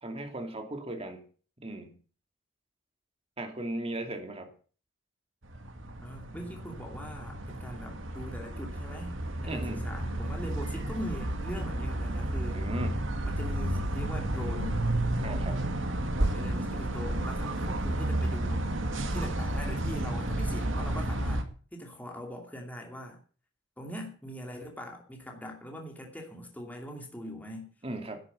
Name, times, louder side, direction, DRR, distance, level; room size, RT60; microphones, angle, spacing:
voice 1, 0.0-1.2 1.6-1.9 3.4-4.5 9.4-9.8 12.5-13.0 15.2-15.6 27.8-28.2, right 1 dB, 30° right, 5 dB, 2.6 m, -37 dB
sound 1, 5.4-21.4, right 1 dB, 85° right, 2.0 m, -32 dB
voice 2, 6.0-9.1 9.4-12.6 13.3-14.8 16.2-18.7 19.1-23.2 23.8-27.7, equal, 10° left, 1 dB, 2.6 m, -41 dB
11.5 x 9.9 x 6.9 m, 0.40 s
head